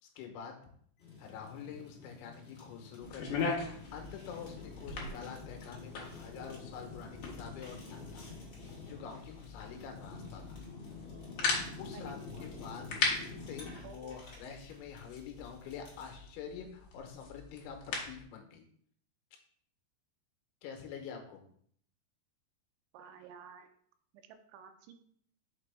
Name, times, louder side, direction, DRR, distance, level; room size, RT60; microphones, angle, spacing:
voice 1, 0.0-0.5 1.2-8.3 8.9-10.6 11.8-12.9 13.4-18.7 20.6-21.4, left 7 dB, 85° left, 3 dB, 3.2 m, -46 dB
Fire, 1.0-16.1, left 4 dB, 45° left, 1.6 m, -49 dB
sound 1, 3.0-18.2, left 4 dB, 65° left, 2.0 m, -40 dB
voice 2, 11.9-12.8 13.8-14.1 22.9-23.7 24.1-24.9, right 7 dB, 85° right, 7 dB, 2.9 m, -53 dB
5.9 x 5.9 x 3.4 m, 0.62 s
omnidirectional pair, 5.5 m